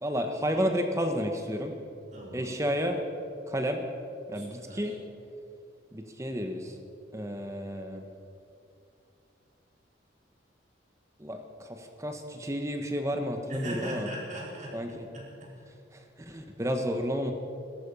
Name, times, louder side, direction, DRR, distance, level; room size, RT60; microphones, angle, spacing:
voice 1, 0.0-1.7 2.3-3.0 3.5-3.8 4.3-4.9 5.9-6.8 7.1-8.0 11.2-14.1 14.7-15.1 15.9-17.3, equal, 15° right, 5 dB, 1.1 m, -31 dB
voice 2, 2.1-2.5 4.3-4.9 13.5-15.5, right 1 dB, 40° right, -4 dB, 4.5 m, -40 dB
18.0 x 14.0 x 5.5 m, 2.5 s
head